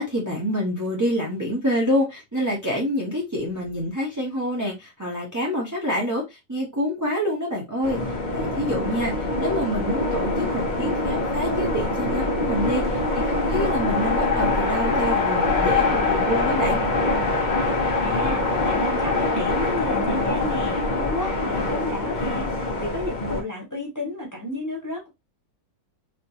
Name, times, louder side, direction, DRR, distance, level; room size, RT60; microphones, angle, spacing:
voice 1, 0.0-8.0 8.3-16.8, equal, 30° right, -3 dB, 0.3 m, -27 dB
sound 1, 7.8-23.4, left 2 dB, 50° left, 0.5 m, -24 dB
voice 2, 18.0-22.5 22.8-25.1, left 1 dB, 15° left, -2 dB, 0.9 m, -31 dB
3.2 x 2.9 x 2.7 m, 0.21 s
omnidirectional pair, 2.0 m